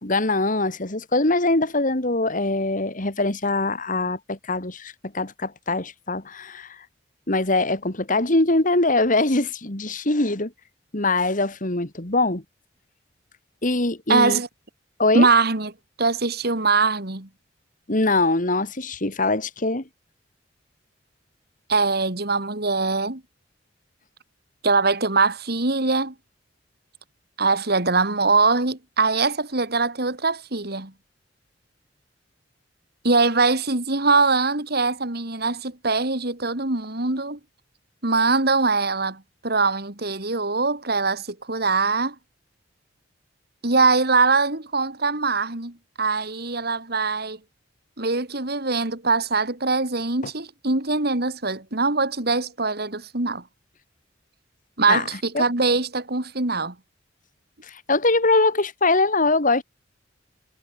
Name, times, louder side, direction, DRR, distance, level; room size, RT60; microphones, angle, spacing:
voice 1, 0.0-6.8 7.3-10.5 10.9-12.4 13.6-14.4 15.0-15.3 17.9-19.8 54.9-55.0 55.3-55.4 57.7-59.6, left 2 dB, 45° left, 2.7 m, -22 dB
voice 2, 14.1-14.5 15.1-15.7 16.0-17.3 21.7-23.2 24.6-26.1 27.4-30.9 33.0-37.4 38.0-42.1 43.6-47.4 48.0-53.4 54.8-56.7, right 3 dB, 55° right, 2.8 m, -22 dB
head